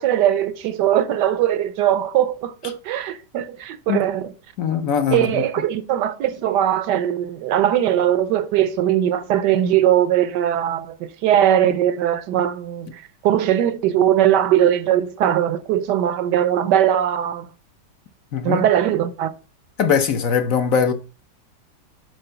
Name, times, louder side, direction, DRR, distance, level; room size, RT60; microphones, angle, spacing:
voice 1, 0.0-4.3 5.1-17.5 18.4-19.3, right 11 dB, 75° right, 1.3 m, -20 dB
voice 2, 4.6-5.4 18.3-18.6 19.8-20.9, left 7 dB, 60° left, 1.1 m, -20 dB
7.8 x 4.5 x 4.4 m
omnidirectional pair, 1.9 m